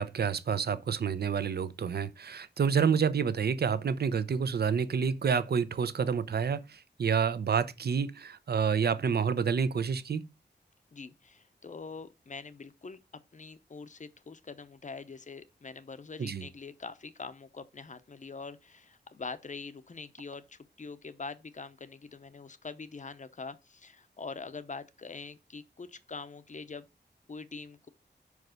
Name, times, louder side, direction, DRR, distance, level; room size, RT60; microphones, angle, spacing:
voice 1, 0.0-10.3 16.2-16.5, right 6 dB, 60° right, 0.6 m, -29 dB
voice 2, 10.9-13.0 13.3-26.9 27.3-27.9, left 4 dB, 40° left, 0.7 m, -44 dB
5.2 x 4.8 x 6.3 m
wide cardioid pair, 120°, 19 cm